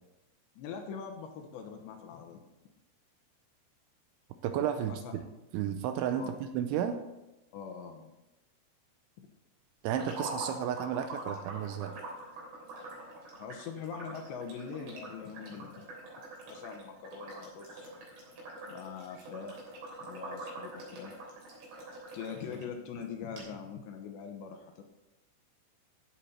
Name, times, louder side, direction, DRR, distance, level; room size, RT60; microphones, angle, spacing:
voice 1, 0.6-2.4 4.9-5.1 6.2-6.3 7.5-8.1 9.2-9.3 13.4-15.9 16.5-17.9 18.7-19.6 20.0-21.2 22.1-24.8, left 6 dB, 75° left, 4 dB, 2.9 m, -43 dB
voice 2, 4.4-5.0 5.5-7.0 9.8-11.9, right 9 dB, 80° right, 8 dB, 2.8 m, -32 dB
sound 1, 9.9-22.6 23.0-23.1 23.4-23.5, right 2 dB, 55° right, 5.4 m, -45 dB
14.0 x 8.2 x 4.4 m, 0.98 s
omnidirectional pair, 5.7 m